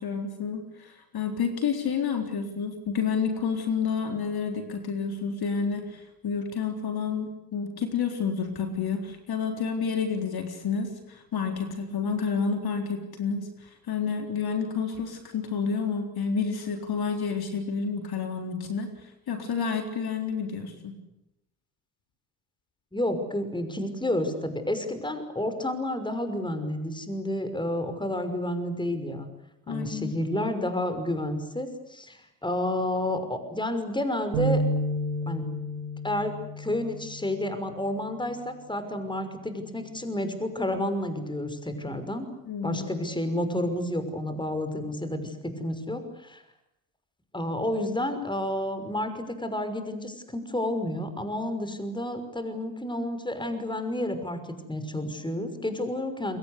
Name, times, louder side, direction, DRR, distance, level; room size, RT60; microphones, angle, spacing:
voice 1, 0.0-20.9 29.7-30.1 42.5-42.9, left 6 dB, 50° left, 5 dB, 4.0 m, -30 dB
voice 2, 22.9-29.3 29.7-34.6 35.3-35.5 36.0-42.3 42.6-46.4 47.3-56.4, left 1 dB, 10° left, 9 dB, 5.8 m, -30 dB
sound 1, 34.3-37.9, right 1 dB, 85° right, 4.6 m, -31 dB
29.0 x 23.0 x 8.3 m, 0.87 s
hypercardioid pair, 60°, 48 cm